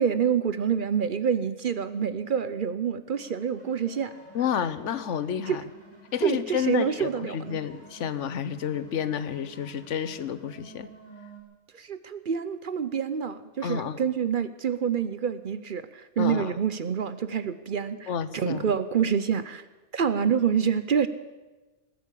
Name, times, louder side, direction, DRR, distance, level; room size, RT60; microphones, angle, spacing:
voice 1, 0.0-4.1 5.5-5.6 6.2-7.6 11.7-19.6 19.9-21.1, right 7 dB, 50° right, 13 dB, 0.8 m, -27 dB
sound 1, 3.1-11.4, right 2 dB, 10° left, 4.6 m, -51 dB
voice 2, 4.3-5.6 6.1-10.9 13.6-14.0 16.2-16.5 18.1-18.6, left 8 dB, 80° left, 14 dB, 1.1 m, -30 dB
19.0 x 8.5 x 8.4 m, 1.2 s
omnidirectional pair, 1.2 m